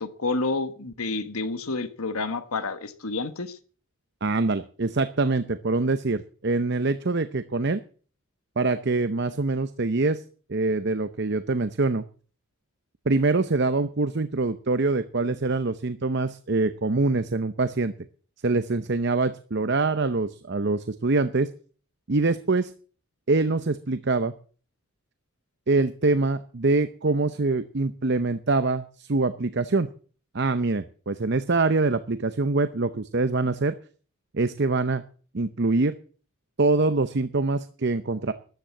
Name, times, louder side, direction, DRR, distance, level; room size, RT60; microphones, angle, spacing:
voice 1, 0.0-3.6, left 3 dB, 80° left, 1.4 m, -29 dB
voice 2, 4.2-7.8 8.6-10.2 10.5-12.0 13.1-17.9 18.4-21.5 22.1-22.7 23.3-24.3 25.7-29.9 30.3-33.7 34.3-35.0 35.3-35.9 36.6-38.3, right 3 dB, 50° right, 0.7 m, -24 dB
13.5 x 10.5 x 7.4 m
head